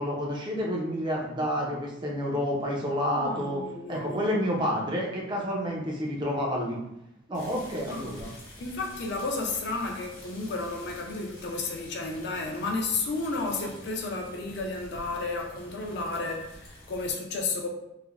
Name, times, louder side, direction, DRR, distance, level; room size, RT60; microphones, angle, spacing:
voice 1, 0.0-3.6 3.9-6.8 7.3-8.3, equal, 20° right, 0.5 m, -29 dB
voice 2, 3.2-4.3 7.9-8.1 8.6-17.7, left 3 dB, 55° left, 0.4 m, -32 dB
sound 1, 7.3-17.1, left 1 dB, 75° left, 1.0 m, -48 dB
3.2 x 2.0 x 2.3 m
head